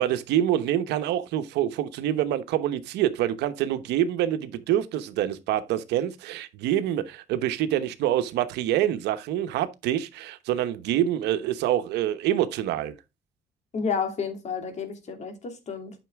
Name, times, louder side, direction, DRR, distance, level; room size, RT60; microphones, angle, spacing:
voice 1, 0.0-12.9, right 11 dB, 85° right, 1.0 m, -26 dB
voice 2, 13.7-15.9, left 5 dB, 40° left, 2.8 m, -31 dB
9.1 x 6.1 x 3.5 m
cardioid pair, 110°, 17 cm